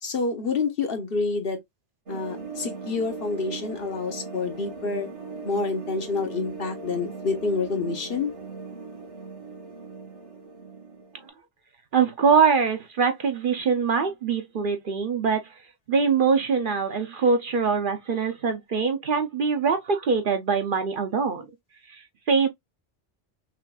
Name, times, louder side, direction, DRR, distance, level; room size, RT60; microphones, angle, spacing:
voice 1, 0.0-1.6 2.1-5.1 5.4-8.3, left 4 dB, 55° left, 1.1 m, -28 dB
sound 1, 2.1-11.3, right 4 dB, 80° right, 2.2 m, -39 dB
voice 2, 11.9-15.4 15.9-21.5 21.9-22.5, right 5 dB, 55° right, 0.8 m, -23 dB
5.8 x 2.5 x 2.3 m
omnidirectional pair, 1.2 m